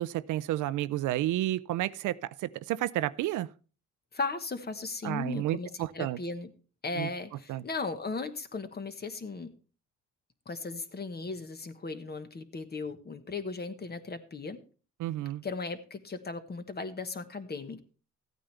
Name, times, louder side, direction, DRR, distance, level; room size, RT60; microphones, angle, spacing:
voice 1, 0.0-3.5 5.0-6.2 7.0-7.1 7.5-7.6 15.0-15.4, right 14 dB, 80° right, 0.5 m, -31 dB
voice 2, 4.1-6.5 6.8-9.5 10.5-14.6 15.4-17.8, left 3 dB, 35° left, 1.3 m, -37 dB
14.5 x 9.1 x 3.3 m
cardioid pair, 90°, 30 cm